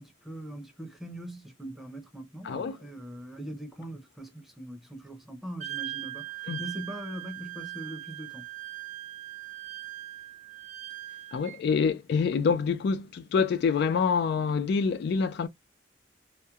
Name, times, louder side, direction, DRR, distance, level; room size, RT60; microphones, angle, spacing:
voice 1, 0.0-6.3 6.6-8.4, right 1 dB, ahead, 0.6 m, -41 dB
voice 2, 2.4-2.8 6.5-6.6 11.3-15.5, left 5 dB, 65° left, 0.3 m, -26 dB
Wind instrument woodwind instrument, 5.6-11.6, right 14 dB, 40° right, 0.3 m, -40 dB
3.0 x 2.0 x 2.3 m
head